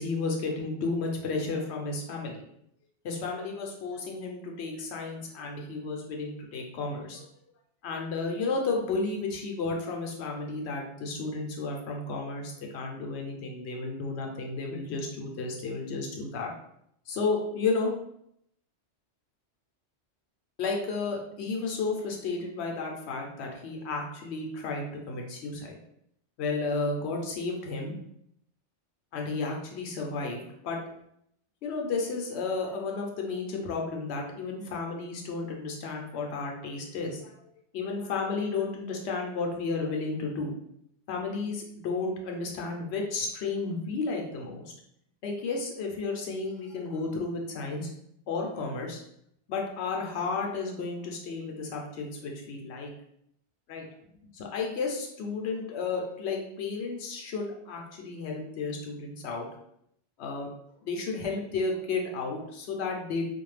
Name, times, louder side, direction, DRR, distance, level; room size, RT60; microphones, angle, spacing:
voice 1, 0.0-2.3 3.0-7.3 7.8-16.5 17.1-17.9 20.6-25.8 26.4-27.9 29.1-30.8 31.6-37.3 37.7-40.5 41.1-44.7 45.2-47.9 48.3-49.0 49.5-52.9 53.7-53.9 54.3-59.5 60.2-60.5 60.8-63.3, left 3 dB, 70° left, 1 dB, 0.8 m, -32 dB
2.5 x 2.2 x 3.2 m, 0.74 s
omnidirectional pair, 1.2 m